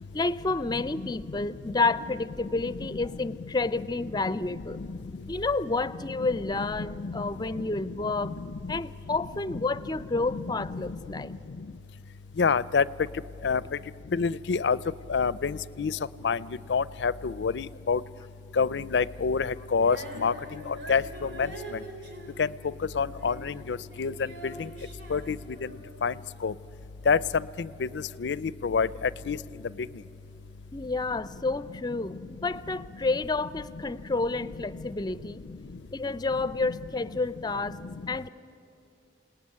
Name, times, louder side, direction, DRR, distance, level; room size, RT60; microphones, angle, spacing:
voice 1, 0.1-4.8 5.3-8.4 8.7-11.3 30.7-35.4 35.9-37.8 38.1-38.3, left 3 dB, 25° left, 16 dB, 0.5 m, -30 dB
voice 2, 12.4-12.8 13.4-13.6 14.1-14.8 15.1-15.9 16.2-16.4 16.7-18.0 18.6-20.0 20.2-20.3 20.9-21.0 21.4-21.5 22.4-22.5 23.0-24.1 24.4-24.5 25.1-25.4 26.0-26.1 26.4-26.5 27.1-27.2 27.8-27.9 28.2-28.9 29.3-29.4, left 5 dB, 80° left, 19 dB, 0.5 m, -26 dB
Female singing, 19.8-26.1 26.8-26.9, right 1 dB, 90° right, 3.6 m, -44 dB
28.0 x 18.5 x 9.7 m, 2.8 s
head